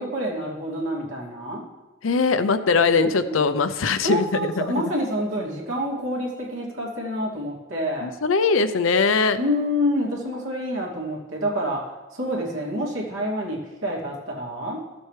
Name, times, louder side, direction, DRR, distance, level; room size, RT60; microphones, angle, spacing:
voice 1, 0.0-1.6 2.7-3.4 4.0-8.1 9.3-11.8 12.1-14.8, equal, 75° right, -3 dB, 2.7 m, -27 dB
voice 2, 2.0-4.6 8.0-9.4, left 4 dB, 70° left, 11 dB, 0.6 m, -21 dB
15.5 x 7.7 x 3.3 m, 1.1 s
head